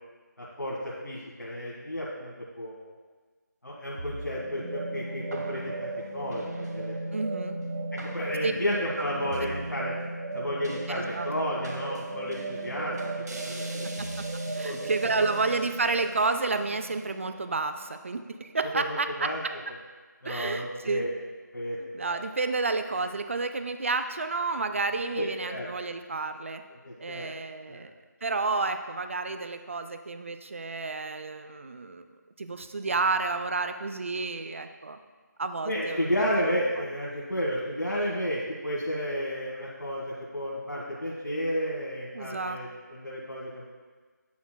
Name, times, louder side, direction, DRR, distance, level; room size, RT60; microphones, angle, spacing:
voice 1, 0.4-2.9 3.6-6.9 7.9-9.9 10.3-13.1 13.4-13.8 14.6-14.9 18.7-19.4 20.2-21.1 21.5-22.2 25.1-25.7 26.8-27.3 27.7-27.8 35.6-43.6, equal, 90° left, -5 dB, 1.5 m, -32 dB
sound 1, 4.0-18.4, right 2 dB, 60° right, 0.9 m, -36 dB
voice 2, 7.1-7.6 8.4-8.5 9.4-9.5 10.9-11.3 13.7-14.3 14.6-19.5 20.2-21.1 21.8-26.6 27.0-27.9 28.2-32.1 32.4-35.0 35.4-36.1 42.1-42.6, right 3 dB, 45° right, 8 dB, 0.4 m, -30 dB
9.3 x 5.9 x 2.2 m, 1.4 s
figure-of-eight pair, 165°, 10 cm